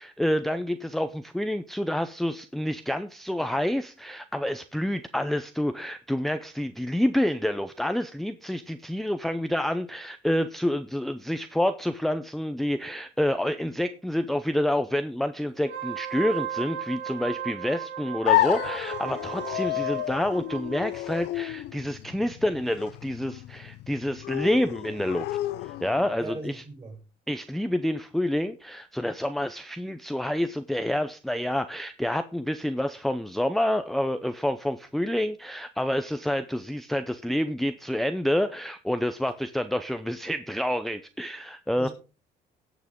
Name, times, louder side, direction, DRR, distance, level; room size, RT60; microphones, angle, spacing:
voice 1, 0.0-25.3 25.6-26.5 27.3-41.9, left 1 dB, ahead, 9 dB, 0.5 m, -28 dB
Wind instrument woodwind instrument, 15.6-20.9, right 9 dB, 85° right, 1.6 m, -36 dB
sound 1, 18.2-26.2, left 15 dB, 80° left, 0.5 m, -30 dB
voice 2, 26.2-27.0 41.7-41.9, right 2 dB, 35° right, 1 dB, 5.8 m, -38 dB
17.5 x 6.0 x 3.6 m, 0.33 s
cardioid pair, 110°, 17 cm